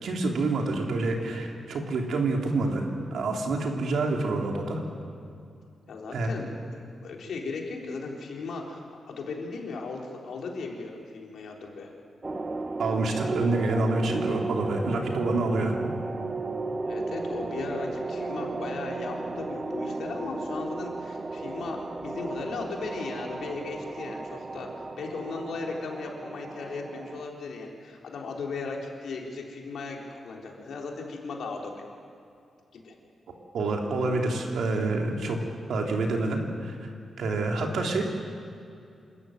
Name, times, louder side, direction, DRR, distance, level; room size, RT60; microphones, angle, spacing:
voice 1, 0.0-4.8 6.1-6.3 12.8-15.8 33.5-35.4 35.7-36.9 37.2-38.0, right 2 dB, 75° right, 1 dB, 3.3 m, -27 dB
voice 2, 5.9-11.9 16.8-31.9 32.7-33.0, left 3 dB, 75° left, 0 dB, 3.8 m, -37 dB
sound 1, 12.2-27.3, right 3 dB, 20° right, 0.8 m, -34 dB
28.0 x 14.0 x 9.2 m, 2.5 s
wide cardioid pair, 160°, 0 cm